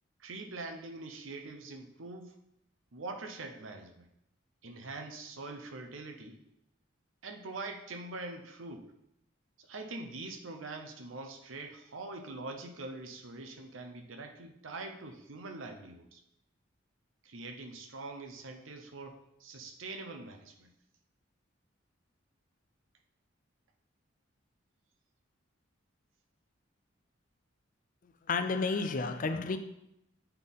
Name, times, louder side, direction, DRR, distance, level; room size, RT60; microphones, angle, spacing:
voice 1, 0.2-2.3 2.9-4.1 4.6-6.4 7.2-8.9 9.6-16.2 17.2-20.7, right 3 dB, 85° right, 5 dB, 0.8 m, -43 dB
voice 2, 28.3-29.6, left 4 dB, 40° left, 9 dB, 0.4 m, -31 dB
8.0 x 4.1 x 3.6 m, 0.81 s
head